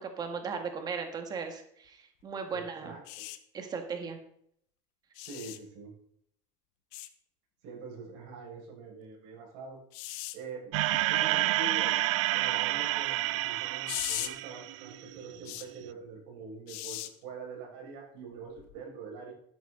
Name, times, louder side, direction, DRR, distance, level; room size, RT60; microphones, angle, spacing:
voice 1, 0.0-2.9 3.5-4.2, right 5 dB, 25° right, 6 dB, 1.8 m, -37 dB
voice 2, 2.5-3.3 5.2-6.0 7.6-9.8 10.3-10.7 11.1-11.9 12.3-19.3, right 4 dB, 70° right, -2 dB, 6.0 m, -44 dB
sound 1, 3.1-3.4 5.2-5.6 6.9-7.1 9.9-10.4 13.9-14.3 15.5-15.7 16.7-17.1 18.6-18.7, left 16 dB, 65° left, 1.0 m, -37 dB
sound 2, 10.7-15.2, right 17 dB, 85° right, 0.5 m, -29 dB
12.0 x 10.0 x 3.9 m, 0.68 s
cardioid pair, 160°, 16 cm